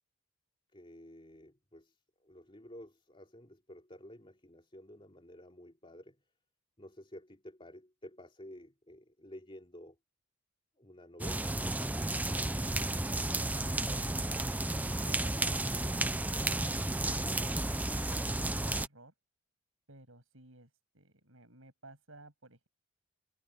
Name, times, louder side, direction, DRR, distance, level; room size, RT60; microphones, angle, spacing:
voice 1, 0.7-6.2 6.8-10.0 10.8-11.5, equal, 25° left, 3.3 m, -52 dB
sound 1, 11.2-18.9, right 2 dB, 10° right, 0.6 m, -32 dB
voice 2, 18.0-19.1 19.9-22.7, right 1 dB, 70° right, 7.5 m, -57 dB
head